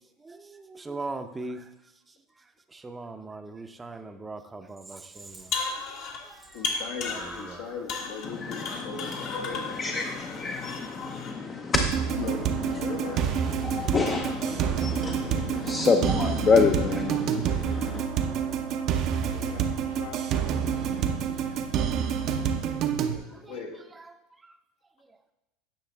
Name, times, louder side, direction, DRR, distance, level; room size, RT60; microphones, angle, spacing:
voice 1, 0.3-1.7 2.4-5.5 6.0-6.8 7.1-7.7 20.8-21.3 23.3-23.5 23.9-24.1 24.4-24.6 25.0-25.2, right 3 dB, 15° right, 8 dB, 0.7 m, -41 dB
sound 1, 5.3-6.3 6.6-7.6 7.9-11.3, left 4 dB, 55° left, 1.4 m, -34 dB
voice 2, 6.5-10.1 12.1-12.4 12.8-13.3 16.4-17.0 19.2-20.3 23.1-23.8, left 5 dB, 75° left, 0 dB, 1.7 m, -39 dB
voice 3, 8.2-18.0, left 5 dB, 30° left, 4 dB, 0.7 m, -28 dB
sound 2, 11.7-23.2, right 8 dB, 50° right, 0.7 m, -28 dB
10.0 x 5.5 x 3.5 m, 0.95 s
hypercardioid pair, 90°, 0 cm